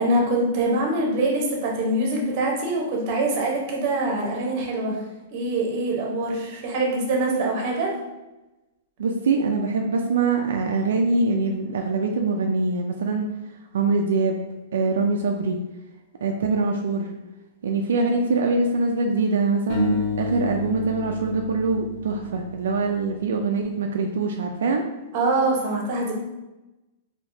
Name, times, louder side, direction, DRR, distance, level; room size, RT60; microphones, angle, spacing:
voice 1, 0.0-5.0 5.3-7.9 25.1-26.1, right 2 dB, 40° right, -1 dB, 0.9 m, -24 dB
voice 2, 9.0-13.3 13.7-14.4 14.7-15.6 16.2-17.1 17.6-24.9, right 3 dB, 90° right, 2 dB, 0.3 m, -23 dB
sound 1, 19.7-22.9, left 3 dB, 45° left, 0.9 m, -30 dB
3.4 x 2.8 x 2.7 m, 1.0 s
hypercardioid pair, 155°, 0 cm